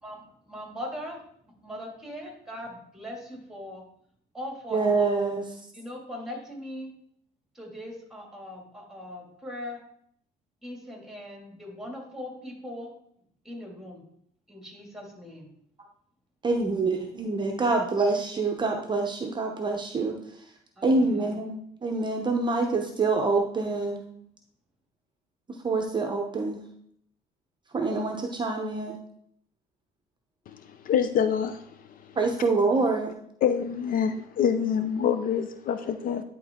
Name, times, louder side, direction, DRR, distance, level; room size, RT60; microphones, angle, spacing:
voice 1, 0.0-1.2 1.6-3.8 4.3-5.3 5.7-6.9 7.5-9.8 10.6-12.9 13.4-14.0 14.5-15.5 20.8-21.3, left 1 dB, ahead, 0 dB, 2.2 m, -40 dB
voice 2, 4.7-5.4 16.4-20.2 20.8-24.0 25.6-26.7 27.7-29.0 32.2-33.1, right 3 dB, 25° right, 2 dB, 0.7 m, -26 dB
voice 3, 30.9-31.6 33.4-36.2, left 8 dB, 55° left, 10 dB, 0.5 m, -25 dB
10.5 x 3.8 x 3.6 m, 0.69 s
cardioid pair, 110°, 17 cm